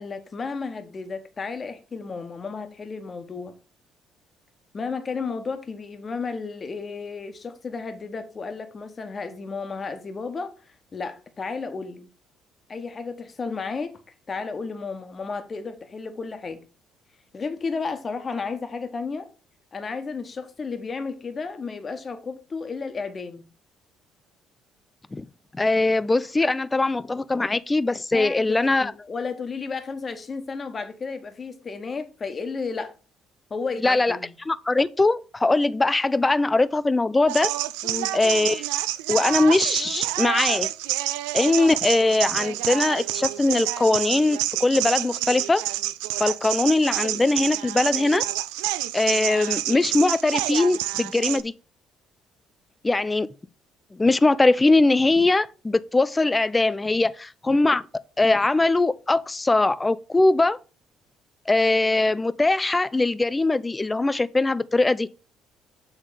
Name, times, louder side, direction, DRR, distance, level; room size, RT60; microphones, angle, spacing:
voice 1, 0.0-3.5 4.7-10.5 10.9-12.1 12.7-13.9 14.3-16.6 17.3-19.3 19.7-23.4 28.1-28.5 28.8-32.9 33.5-34.3 37.8-38.2, left 4 dB, 40° left, 1.2 m, -33 dB
voice 2, 25.5-28.9 33.8-34.2 34.5-37.5 38.1-38.7 39.1-40.7 41.3-45.6 46.2-48.2 48.9-51.5 52.8-53.3 53.9-57.8 58.2-60.6 61.5-65.1, left 2 dB, 20° left, 0.5 m, -21 dB
sound 1, 37.3-51.4, right 15 dB, 80° right, 0.3 m, -28 dB
7.4 x 3.6 x 5.0 m
hypercardioid pair, 55°, 0 cm